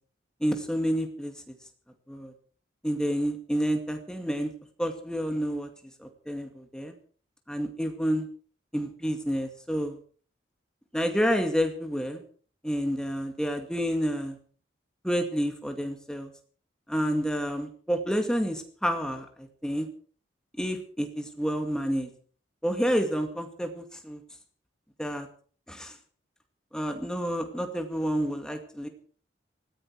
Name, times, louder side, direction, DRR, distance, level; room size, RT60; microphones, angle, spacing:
voice 1, 0.4-1.3 2.1-2.3 2.8-4.5 4.8-5.7 6.0-6.9 7.5-8.3 8.7-10.0 10.9-12.2 12.6-14.4 15.0-16.3 16.9-19.9 20.6-22.1 22.6-24.2 25.0-25.3 25.7-26.0 26.7-28.9, equal, 5° left, 5 dB, 2.1 m, -29 dB
19.5 x 15.0 x 4.7 m, 0.43 s
head